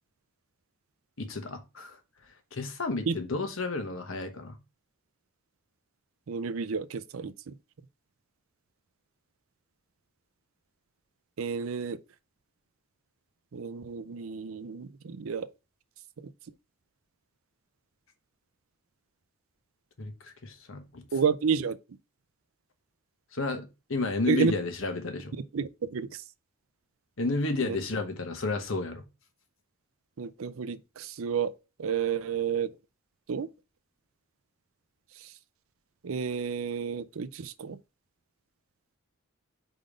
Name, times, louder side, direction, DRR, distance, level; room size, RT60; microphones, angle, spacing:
voice 1, 1.2-2.0 2.5-4.6 20.0-21.0 23.3-25.3 27.2-29.0, left 3 dB, 60° left, 1.1 m, -32 dB
voice 2, 6.3-7.5 11.4-12.0 13.5-15.5 21.1-21.8 24.3-24.5 25.5-26.1 27.6-27.8 30.2-31.5 31.8-32.7 33.3-33.5 36.0-37.8, right 6 dB, 65° right, 0.5 m, -30 dB
5.1 x 3.9 x 5.0 m
head